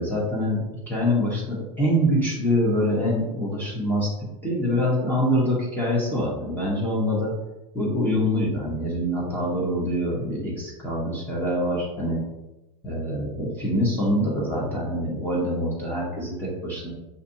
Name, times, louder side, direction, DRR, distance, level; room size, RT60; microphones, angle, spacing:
voice 1, 0.0-4.1 4.4-7.3 7.7-12.2 12.8-16.9, equal, 10° left, -6 dB, 1.1 m, -25 dB
5.7 x 2.7 x 2.7 m, 0.98 s
supercardioid pair, 135°, 20 cm